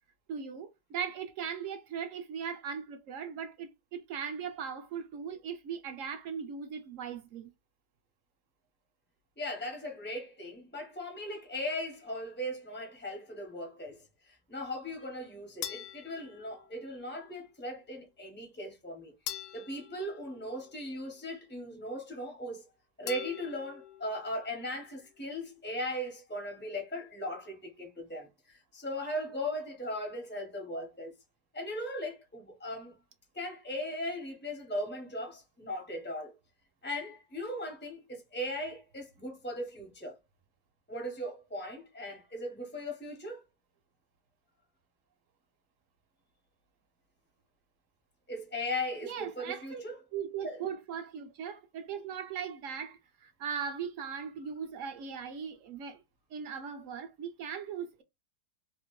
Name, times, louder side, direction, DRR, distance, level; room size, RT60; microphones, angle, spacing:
voice 1, 0.3-7.5 49.0-49.8 50.1-56.0 56.3-58.0, right 7 dB, 65° right, 0.8 m, -39 dB
voice 2, 9.4-19.1 19.5-22.7 23.0-31.1 31.5-32.9 33.3-36.3 36.8-40.1 40.9-43.4 48.3-49.9 50.4-50.6, left 1 dB, 15° left, 0.4 m, -38 dB
sound 1, 15.6-17.1 19.3-21.1 23.1-24.2, left 11 dB, 75° left, 1.1 m, -44 dB
2.8 x 2.4 x 3.0 m
omnidirectional pair, 1.7 m